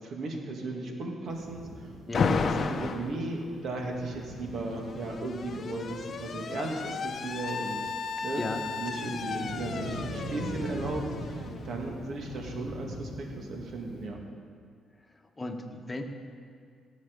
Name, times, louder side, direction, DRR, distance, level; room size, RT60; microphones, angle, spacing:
voice 1, 0.0-1.9 2.2-7.9 8.2-8.4 8.8-14.2, right 2 dB, 65° right, 1 dB, 2.2 m, -36 dB
sound 1, 1.3-14.1, right 1 dB, 90° right, 2.9 m, -42 dB
Alarm, 2.1-3.1 4.3-12.0, left 5 dB, 50° left, 0.7 m, -34 dB
voice 2, 15.0-16.0, left 2 dB, 20° left, 3 dB, 1.3 m, -36 dB
18.0 x 7.3 x 5.4 m, 2.1 s
cardioid pair, 90°, 0 cm